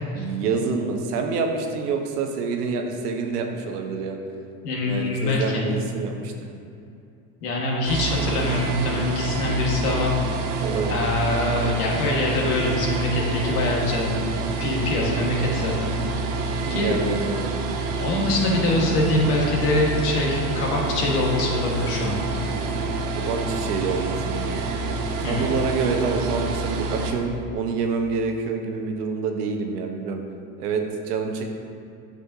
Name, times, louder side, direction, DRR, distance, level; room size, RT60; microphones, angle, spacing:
voice 1, 0.2-4.2 4.8-6.3 10.6-11.0 16.5-17.6 23.1-24.7 25.2-30.2 30.6-31.4, right 4 dB, 90° right, 4 dB, 0.9 m, -27 dB
voice 2, 4.6-5.6 7.4-10.1 10.9-14.2 14.6-17.0 18.0-22.2 25.2-25.5, left 2 dB, 85° left, -2 dB, 1.6 m, -24 dB
sound 1, 7.9-27.1, right 3 dB, 60° right, 1.0 m, -28 dB
8.3 x 6.4 x 2.7 m, 2.6 s
supercardioid pair, 100°, 45 cm